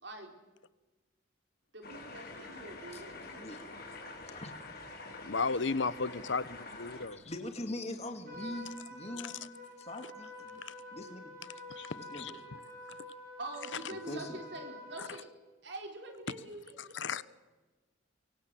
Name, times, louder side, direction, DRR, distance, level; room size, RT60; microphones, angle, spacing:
voice 1, 0.0-0.3 1.7-3.5 4.0-4.2 13.4-15.3 15.6-17.2, right 2 dB, 60° right, 3.8 m, -45 dB
sound 1, 1.8-7.1, left 3 dB, 50° left, 4.7 m, -47 dB
voice 2, 3.3-4.0 4.3-4.5 6.7-9.4 9.8-10.6 10.9-11.3 11.9-12.4 14.1-14.4, left 1 dB, 35° left, 2.5 m, -43 dB
voice 3, 5.2-7.2 9.2-9.3 10.6-10.7 11.7-12.3 15.0-15.1 16.8-17.2, left 4 dB, 70° left, 0.9 m, -35 dB
Trumpet, 8.3-15.2, left 1 dB, 45° right, 5.5 m, -48 dB
24.0 x 24.0 x 7.7 m
head